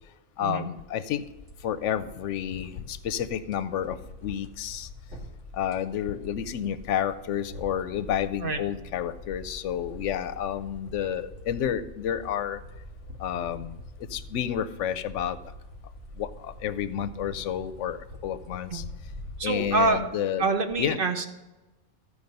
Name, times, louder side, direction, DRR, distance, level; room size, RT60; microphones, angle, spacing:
voice 1, 0.4-1.2 1.6-4.9 5.5-12.6 13.2-15.4 16.2-18.9 19.4-20.5 20.8-21.0, left 9 dB, 85° left, 13 dB, 0.9 m, -30 dB
sound 1, 1.0-20.0, equal, 80° right, 2.4 m, -45 dB
voice 2, 19.4-20.0 20.4-21.3, right 3 dB, 55° right, 7 dB, 1.0 m, -26 dB
14.0 x 5.0 x 5.3 m, 1.1 s
omnidirectional pair, 1.2 m